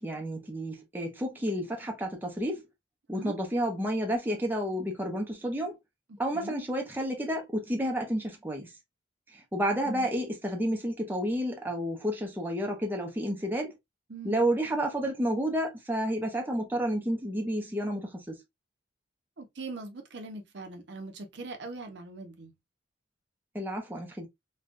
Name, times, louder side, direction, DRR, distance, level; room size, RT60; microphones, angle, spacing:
voice 1, 0.0-2.6 3.1-5.8 6.2-8.7 9.3-13.7 14.2-18.4 23.5-24.3, equal, 10° right, 0.6 m, -30 dB
voice 2, 6.1-6.6 9.8-10.1 14.1-14.4 19.4-22.5, right 3 dB, 65° right, 0.7 m, -41 dB
3.2 x 2.2 x 2.4 m
head